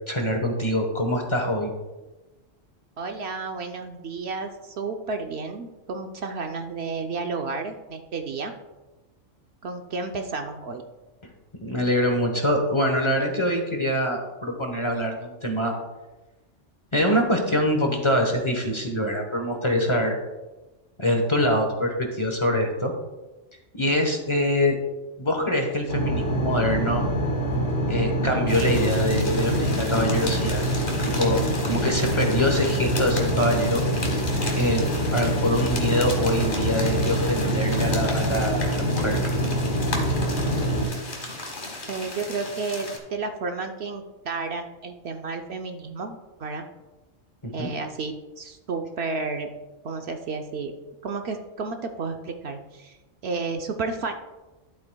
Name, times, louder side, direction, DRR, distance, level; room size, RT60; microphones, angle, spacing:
voice 1, 0.1-1.7 11.6-15.7 16.9-20.2 21.0-22.9 23.8-24.7 25.2-27.0 27.9-30.6 31.0-33.8 34.5-39.2 47.4-47.7, equal, 25° left, 2 dB, 1.0 m, -24 dB
voice 2, 3.0-8.5 9.6-10.8 41.8-46.7 47.5-49.5 49.8-50.7 51.0-53.0 53.2-54.1, right 4 dB, 60° right, 5 dB, 0.9 m, -32 dB
sound 1, 25.9-40.8, right 1 dB, 80° left, 3.3 m, -25 dB
sound 2, 28.5-43.0, left 2 dB, 45° left, 1.6 m, -35 dB
11.5 x 7.8 x 2.2 m, 1.1 s
omnidirectional pair, 1.3 m